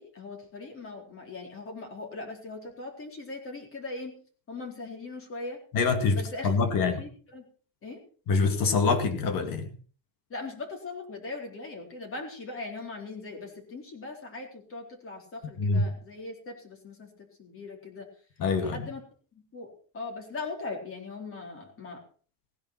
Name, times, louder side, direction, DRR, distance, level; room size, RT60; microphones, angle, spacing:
voice 1, 0.0-4.2 4.5-5.6 6.1-6.5 6.8-7.4 7.8-8.0 10.3-18.1 18.6-19.0 19.5-22.0, left 3 dB, 30° left, 1 dB, 4.1 m, -40 dB
voice 2, 5.7-7.0 8.3-9.7 15.6-15.9 18.4-18.9, left 4 dB, 45° left, 9 dB, 2.3 m, -25 dB
17.5 x 10.5 x 5.8 m, 0.42 s
cardioid pair, 145°, 46 cm